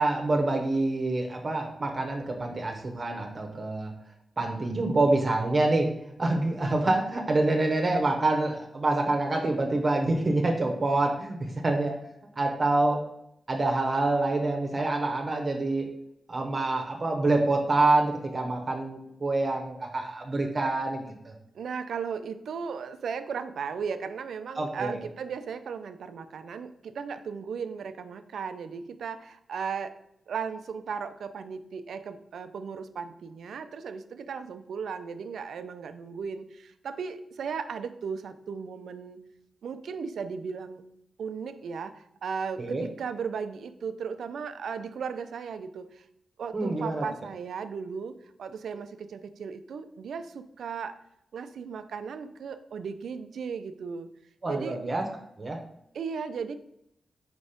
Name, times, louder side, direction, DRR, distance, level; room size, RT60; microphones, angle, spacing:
voice 1, 0.0-3.9 4.4-5.9 6.2-11.4 11.6-11.9 12.4-13.0 13.5-15.9 16.3-21.3 24.6-25.0 42.6-42.8 46.5-47.0 54.4-55.0 55.4-55.6, right 2 dB, 45° right, 2 dB, 1.1 m, -26 dB
voice 2, 21.5-29.9 30.3-39.2 39.6-40.8 41.2-46.0 46.4-48.1 48.4-51.0 51.3-54.1 54.5-54.8 55.9-56.6, right 6 dB, 80° right, 11 dB, 0.4 m, -36 dB
4.7 x 4.1 x 5.1 m, 0.78 s
cardioid pair, 50°, 0 cm